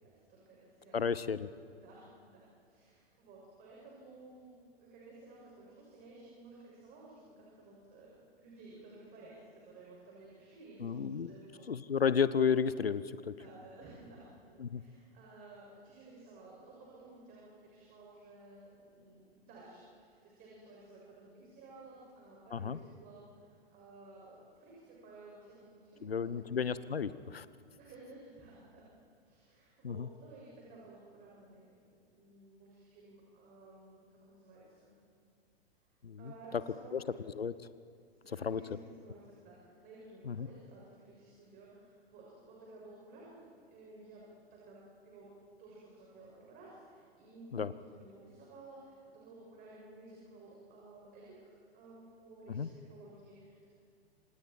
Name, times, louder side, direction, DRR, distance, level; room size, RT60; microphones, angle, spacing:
voice 1, 0.0-1.1 1.7-11.7 13.3-27.2 27.8-28.9 29.2-34.9 36.2-37.1 38.2-44.2 44.5-44.8 45.0-45.3 45.6-53.7, right 2 dB, 30° right, -4 dB, 6.4 m, -55 dB
voice 2, 0.9-1.5 10.8-11.3 11.7-13.3 14.6-14.8 22.5-22.8 26.0-27.4 29.8-30.1 36.0-36.3 36.9-37.0 37.4-37.5 38.4-38.6 40.2-40.5 47.5-47.7 52.5-52.7, left 6 dB, 75° left, 16 dB, 0.9 m, -32 dB
28.0 x 26.0 x 4.6 m, 2.5 s
figure-of-eight pair, 100°, 30 cm